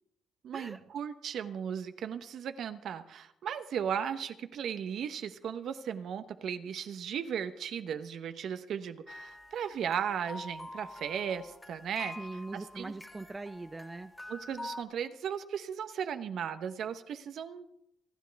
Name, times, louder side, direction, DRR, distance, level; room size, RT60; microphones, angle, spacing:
voice 1, 0.4-12.2 12.5-12.9 14.3-17.7, right 8 dB, 70° right, 10 dB, 0.9 m, -36 dB
sound 1, 9.1-14.8, left 2 dB, 15° left, 1.6 m, -46 dB
voice 2, 12.2-14.1, right 2 dB, 20° right, 9 dB, 0.5 m, -41 dB
27.0 x 10.0 x 3.5 m, 0.81 s
cardioid pair, 90°, 0 cm